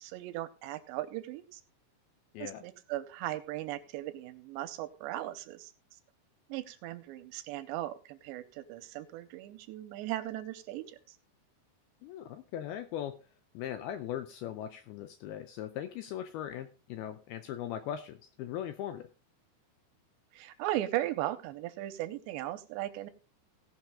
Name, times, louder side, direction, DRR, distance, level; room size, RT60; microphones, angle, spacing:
voice 1, 0.0-1.6 2.4-5.7 6.5-11.2 20.3-23.1, right 14 dB, 85° right, 12 dB, 2.9 m, -37 dB
voice 2, 12.0-13.1 13.5-19.1, left 10 dB, 80° left, 9 dB, 2.3 m, -39 dB
17.5 x 5.9 x 3.6 m, 0.34 s
omnidirectional pair, 5.1 m